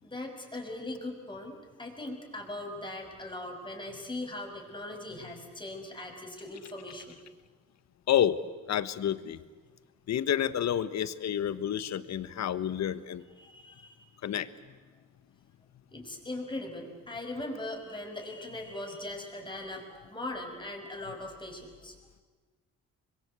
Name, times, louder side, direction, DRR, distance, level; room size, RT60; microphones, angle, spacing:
voice 1, 0.0-7.2 13.4-14.1 15.9-21.9, left 2 dB, 15° left, 2 dB, 6.1 m, -40 dB
voice 2, 8.1-8.4 8.7-9.4 10.1-13.2 14.2-14.5, left 10 dB, 60° left, 14 dB, 1.3 m, -29 dB
26.5 x 22.5 x 8.3 m, 1.4 s
cardioid pair, 90°, 30 cm